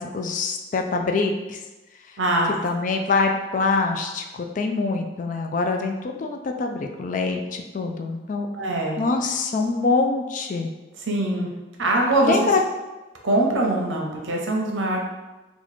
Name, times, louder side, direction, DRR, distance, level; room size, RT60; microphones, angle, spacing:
voice 1, 0.0-1.6 2.6-8.5 9.0-10.7 12.2-12.6, left 3 dB, 45° left, 4 dB, 0.3 m, -24 dB
voice 2, 2.2-2.5 8.5-9.0 11.0-11.5 11.8-12.4 13.2-15.0, right 1 dB, 85° right, 0 dB, 0.7 m, -22 dB
3.0 x 2.4 x 4.0 m, 1.1 s
head